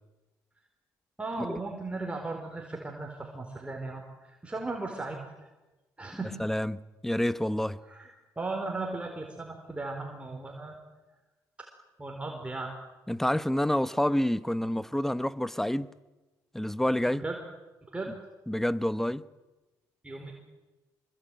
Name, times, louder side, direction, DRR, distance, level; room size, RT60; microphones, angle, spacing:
voice 1, 1.2-5.5 6.0-6.4 7.8-10.7 11.6-11.7 12.0-12.7 17.1-17.4 17.9-18.1 20.0-20.3, right 3 dB, 15° right, 4.4 m, -37 dB
voice 2, 6.4-7.8 13.1-15.9 16.5-17.2 18.5-19.2, left 1 dB, 5° left, 1.0 m, -28 dB
25.5 x 21.5 x 9.2 m
cardioid pair, 85°, 8 cm